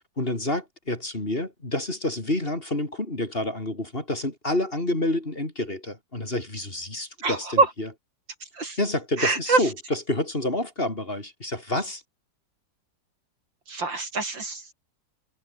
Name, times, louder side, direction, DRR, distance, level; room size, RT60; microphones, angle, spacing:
voice 1, 0.2-7.9 8.8-12.0, left 1 dB, 30° left, 4.2 m, -28 dB
voice 2, 7.2-7.7 8.5-8.8 9.2-9.6 13.7-14.7, right 3 dB, 75° right, 5.3 m, -24 dB
omnidirectional pair, 2.0 m